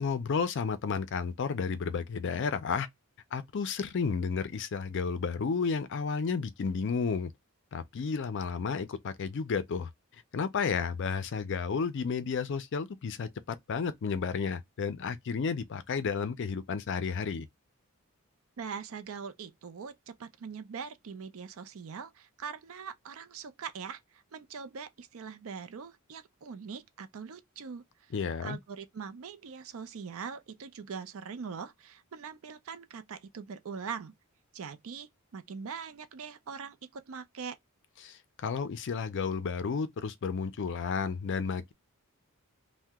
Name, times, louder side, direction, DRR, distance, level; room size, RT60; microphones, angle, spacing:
voice 1, 0.0-2.9 3.3-7.3 7.7-9.9 10.3-17.5 28.1-28.6 38.0-41.7, left 5 dB, 55° left, 0.4 m, -32 dB
voice 2, 18.6-27.8 28.4-34.1 34.5-37.6, right 6 dB, 65° right, 0.4 m, -42 dB
2.8 x 2.1 x 3.4 m
head